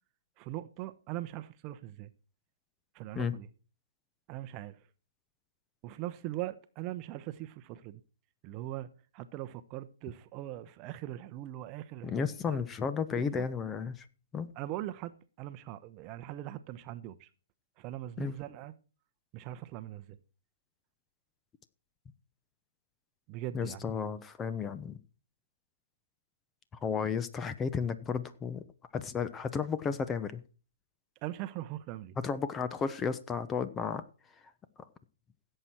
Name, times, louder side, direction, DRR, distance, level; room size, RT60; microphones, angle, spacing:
voice 1, 0.4-2.1 2.9-3.5 4.3-4.8 5.8-8.0 8.4-12.6 13.2-13.5 14.6-17.3 17.8-18.7 19.3-20.2 23.3-23.8 31.2-32.2, right 14 dB, 30° right, 0.9 m, -41 dB
voice 2, 12.0-14.1 14.3-14.5 18.2-18.3 23.5-25.0 26.8-28.6 28.9-30.4 32.2-34.0, left 6 dB, 15° left, 0.9 m, -33 dB
16.5 x 7.8 x 4.5 m
hypercardioid pair, 130°, 0 cm